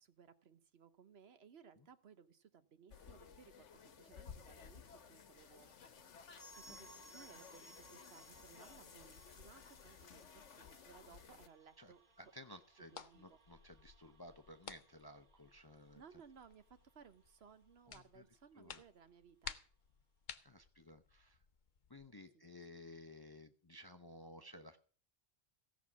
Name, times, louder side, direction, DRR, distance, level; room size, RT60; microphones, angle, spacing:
voice 1, 0.0-5.7 6.6-12.0 12.9-13.4 15.9-19.6 22.3-22.4, right 6 dB, 65° right, 11 dB, 1.1 m, -62 dB
sound 1, 2.9-11.5, left 6 dB, 85° left, 1.4 m, -57 dB
sound 2, 6.4-16.9 17.2-17.3 17.5-17.6 18.2-18.3, right 1 dB, 45° right, 2.1 m, -64 dB
sound 3, 10.8-22.1, left 6 dB, 45° left, 0.9 m, -56 dB
voice 2, 12.2-16.0 17.9-18.2 18.6-18.8 20.4-21.4 21.9-24.8, left 1 dB, 25° left, 8 dB, 0.6 m, -56 dB
16.0 x 6.2 x 7.2 m, 0.43 s
omnidirectional pair, 1.2 m